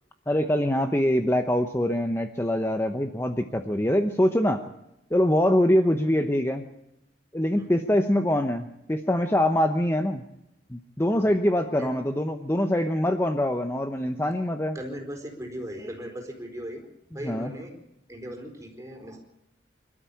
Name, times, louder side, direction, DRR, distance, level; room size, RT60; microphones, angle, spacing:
voice 1, 0.3-4.6 5.1-6.7 7.3-10.2 10.7-14.8 17.2-17.5, left 1 dB, 15° left, 6 dB, 0.9 m, -24 dB
voice 2, 14.7-16.9 17.1-17.7 18.1-19.2, equal, 15° right, 2 dB, 4.5 m, -38 dB
25.0 x 13.0 x 8.6 m, 0.85 s
head